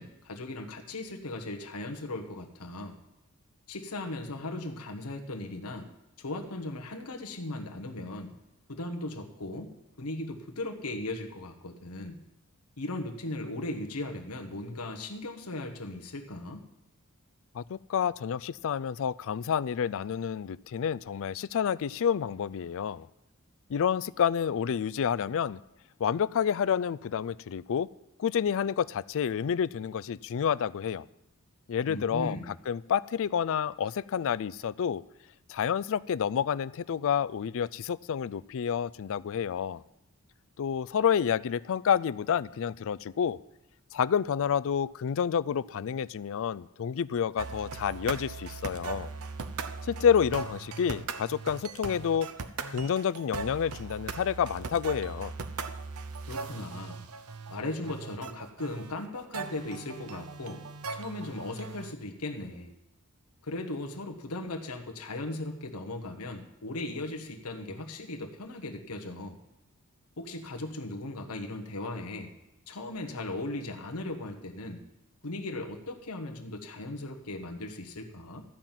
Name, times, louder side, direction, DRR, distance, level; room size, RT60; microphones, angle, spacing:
voice 1, 0.0-3.0 3.7-5.9 6.2-8.4 8.7-9.7 10.0-12.2 12.8-16.6 31.9-32.5 56.3-57.0 57.5-60.6 60.9-62.7 63.4-69.4 70.2-72.3 72.7-74.8 75.2-78.4, left 2 dB, 90° left, 3 dB, 1.2 m, -37 dB
voice 2, 17.5-23.1 23.7-25.6 26.0-27.9 28.2-31.1 31.7-35.0 35.5-39.8 40.6-43.4 43.9-49.1 49.8-52.3 52.7-55.3, left 8 dB, 65° left, 19 dB, 0.4 m, -29 dB
sound 1, 47.4-61.9, right 4 dB, 75° right, 0.8 m, -39 dB
13.0 x 5.9 x 8.9 m, 0.93 s
head